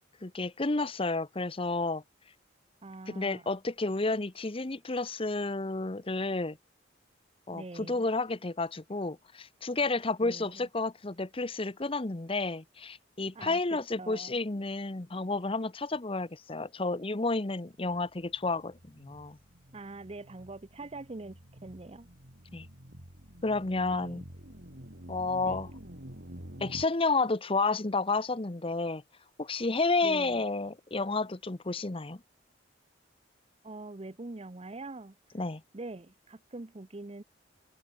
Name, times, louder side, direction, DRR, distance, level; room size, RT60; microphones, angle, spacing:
voice 1, 0.2-2.0 3.1-6.6 7.5-19.4 22.5-22.7 23.4-24.2 25.1-25.7 26.6-29.0 29.4-32.2 35.3-35.6, left 3 dB, 30° left, 0.9 m, -31 dB
voice 2, 2.8-3.6 7.5-8.0 10.2-10.7 13.3-14.4 19.7-22.1 23.9-24.2 25.4-25.6 30.0-30.4 33.6-35.1 35.7-37.2, right 2 dB, 30° right, 0.7 m, -44 dB
sound 1, 17.8-26.9, equal, 55° right, 4.5 m, -48 dB
head